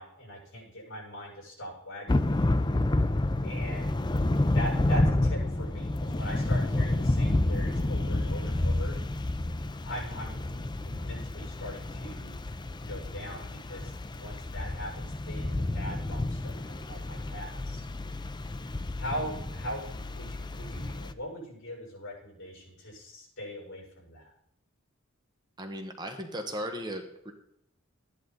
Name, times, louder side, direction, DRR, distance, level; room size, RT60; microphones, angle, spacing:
voice 1, 0.0-2.4 3.4-4.0 4.4-9.0 9.8-12.4 12.8-17.8 19.0-24.3, equal, 60° left, -2 dB, 6.2 m, -41 dB
Thunder / Rain, 2.1-21.1, left 2 dB, 20° left, 0.5 m, -30 dB
voice 2, 25.6-27.3, equal, 20° right, 4 dB, 1.2 m, -36 dB
14.0 x 10.5 x 3.9 m, 0.73 s
head